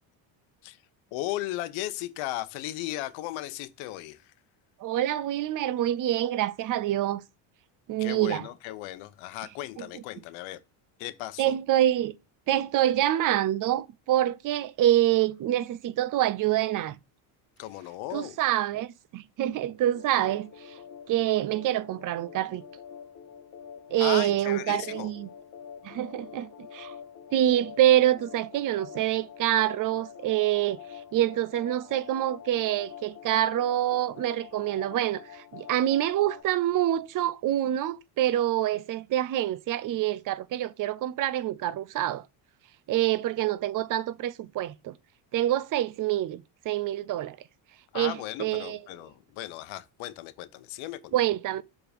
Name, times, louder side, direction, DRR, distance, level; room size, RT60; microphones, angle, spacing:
voice 1, 1.1-4.3 8.0-10.6 11.0-11.5 17.6-18.4 24.0-25.1 47.9-51.1, left 15 dB, 80° left, 0.9 m, -36 dB
voice 2, 4.8-7.2 7.9-8.5 11.4-12.1 12.5-17.0 18.1-20.8 21.1-22.6 23.9-25.3 25.8-26.9 27.3-30.8 31.1-42.2 42.9-44.9 45.3-47.4 47.9-48.8 51.1-51.6, right 13 dB, 45° right, 0.6 m, -26 dB
sound 1, 19.9-36.4, left 8 dB, 40° left, 1.3 m, -46 dB
7.1 x 3.9 x 5.1 m
cardioid pair, 115°, 47 cm